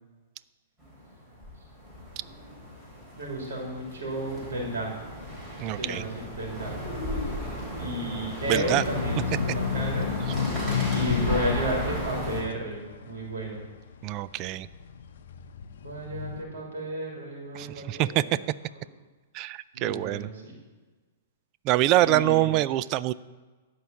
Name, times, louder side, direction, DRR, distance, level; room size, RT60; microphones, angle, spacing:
sound 1, 0.8-12.4, left 1 dB, 15° right, 3.7 m, -34 dB
voice 1, 3.2-4.9 5.7-6.8 7.8-10.1 10.9-13.6 15.8-18.5 19.7-20.6 22.0-22.5, right 1 dB, 80° right, -2 dB, 3.1 m, -33 dB
voice 2, 5.6-6.0 8.5-8.8 14.0-14.7 17.6-18.4 19.3-20.3 21.6-23.1, right 15 dB, 35° right, 17 dB, 0.3 m, -25 dB
sound 2, 8.5-14.0 14.6-16.4, left 8 dB, 75° left, 0.7 m, -31 dB
12.0 x 4.6 x 7.0 m, 1.3 s
hypercardioid pair, 135°, 0 cm